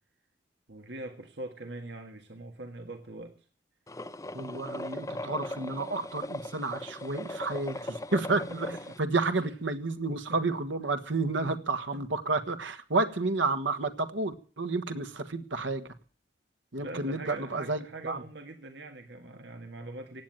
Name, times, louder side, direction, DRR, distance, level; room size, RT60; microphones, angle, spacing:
voice 1, 0.7-3.4 7.7-7.9 8.3-9.0 9.4-9.5 10.3-10.4 11.5-11.6 11.9-12.0 16.8-20.2, right 2 dB, 65° right, 5 dB, 1.7 m, -43 dB
sound 1, 3.9-9.0, left 1 dB, 15° left, 0.7 m, -39 dB
voice 2, 4.3-8.7 9.0-15.9 16.7-18.2, right 3 dB, 85° right, 10 dB, 1.5 m, -31 dB
16.0 x 9.2 x 9.0 m, 0.42 s
head